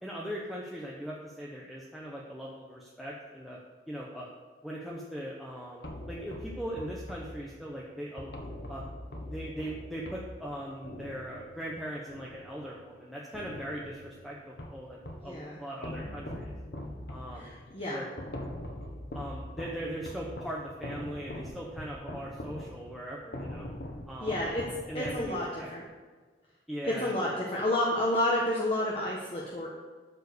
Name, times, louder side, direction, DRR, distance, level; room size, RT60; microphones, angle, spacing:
voice 1, 0.0-3.6 3.9-4.3 4.6-8.3 8.7-8.8 9.3-16.6 17.1-17.5 17.9-18.1 19.1-23.7 24.1-24.4 24.9-25.7 26.7-27.1, equal, ahead, -5 dB, 0.9 m, -40 dB
sound 1, 5.8-13.0 13.3-15.4 15.8-25.7, left 1 dB, 65° left, 1.4 m, -42 dB
voice 2, 15.2-15.6 17.3-18.0 24.2-24.7 24.9-25.8 26.8-29.7, left 1 dB, 35° left, -3 dB, 1.3 m, -30 dB
13.0 x 4.5 x 6.9 m, 1.4 s
head